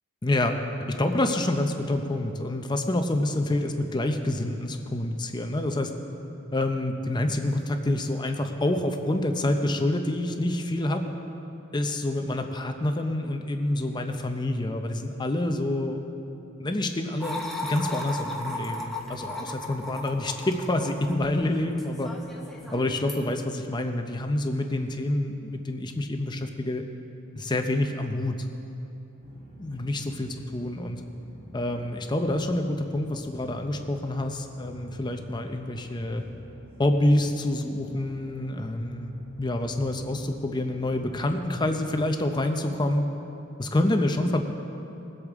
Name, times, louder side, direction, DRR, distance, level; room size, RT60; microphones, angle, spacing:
voice 1, 0.2-0.6 1.0-5.9 6.5-11.1 11.7-16.0 16.6-22.1 22.7-26.8 27.4-28.4 29.6-31.0 31.5-36.2 36.8-43.1 43.6-44.4, left 1 dB, 20° left, 5 dB, 0.6 m, -27 dB
sound 1, 17.2-23.3, left 1 dB, ahead, 0.9 m, -36 dB
sound 2, 29.2-41.9, equal, 40° right, 2.7 m, -48 dB
21.0 x 8.3 x 3.6 m, 2.9 s
head